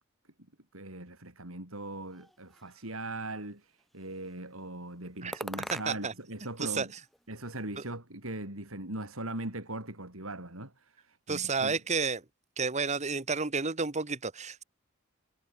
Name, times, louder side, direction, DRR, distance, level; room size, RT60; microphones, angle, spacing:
voice 1, 0.7-6.9 7.3-11.8, right 2 dB, 85° right, 6.8 m, -40 dB
sound 1, 2.1-3.1 3.8-4.4 5.3-6.3 6.5-7.6, equal, ahead, 1.6 m, -44 dB
voice 2, 5.7-6.1 6.6-6.9 11.3-12.2 12.6-14.6, right 4 dB, 35° right, 1.4 m, -31 dB
head